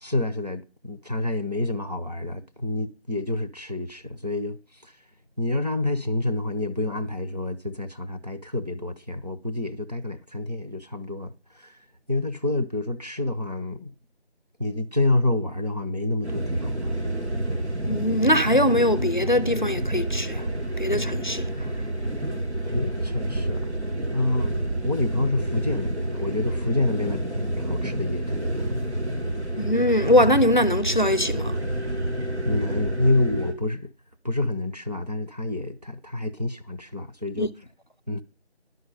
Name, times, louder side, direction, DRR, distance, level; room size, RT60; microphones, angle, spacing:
voice 1, 0.0-5.0 5.4-13.9 14.6-17.1 22.7-23.7 24.1-28.7 32.5-33.9 34.2-37.5 38.1-38.2, left 2 dB, 40° right, 0.7 m, -28 dB
sound 1, 16.2-33.5, right 1 dB, 90° right, 2.2 m, -28 dB
voice 2, 17.9-20.4 20.8-21.5 29.6-31.6 37.4-37.5, left 1 dB, 45° left, 0.5 m, -21 dB
11.0 x 6.9 x 5.1 m
figure-of-eight pair, 170°, 33 cm